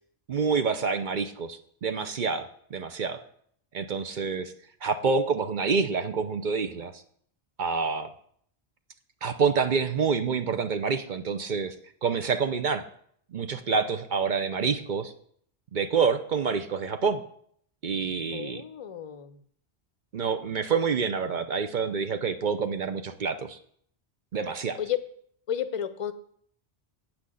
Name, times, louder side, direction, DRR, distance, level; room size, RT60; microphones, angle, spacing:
voice 1, 0.3-3.2 3.7-4.5 4.8-7.0 7.6-8.1 9.2-11.7 12.0-12.8 13.3-15.1 15.7-17.2 17.8-18.6 20.1-23.6 24.3-24.8, right 5 dB, 50° right, 9 dB, 0.7 m, -27 dB
voice 2, 18.3-19.4 24.8-25.0 25.5-26.1, left 10 dB, 35° left, 11 dB, 0.7 m, -32 dB
8.4 x 6.1 x 7.7 m, 0.64 s
omnidirectional pair, 1.1 m